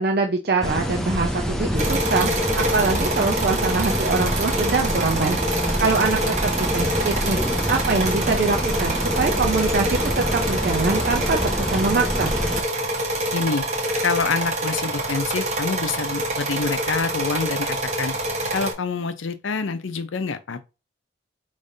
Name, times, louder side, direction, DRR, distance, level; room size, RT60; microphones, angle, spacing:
voice 1, 0.0-2.3 2.6-7.4 7.7-12.3, right 4 dB, 55° right, 0.5 m, -24 dB
sound 1, 0.6-12.6, equal, 5° left, 0.4 m, -26 dB
sound 2, 1.8-18.7, right 1 dB, 35° right, 1.0 m, -26 dB
voice 2, 13.3-13.6 14.0-18.1 18.5-20.6, left 4 dB, 85° left, 0.6 m, -26 dB
5.1 x 3.1 x 2.7 m
head